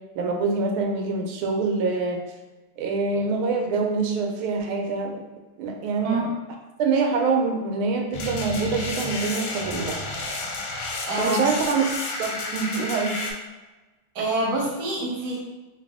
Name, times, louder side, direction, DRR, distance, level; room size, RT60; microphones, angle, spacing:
voice 1, 0.2-2.2 2.8-5.2 5.6-6.2 6.8-10.0 11.2-11.8 12.2-13.2, right 4 dB, 85° right, 2 dB, 1.5 m, -25 dB
sound 1, 8.1-13.3, left 2 dB, 75° left, 1.3 m, -31 dB
voice 2, 11.1-11.5 14.1-15.4, right 2 dB, 60° right, -2 dB, 1.2 m, -26 dB
3.3 x 2.6 x 3.4 m, 1.2 s
omnidirectional pair, 2.3 m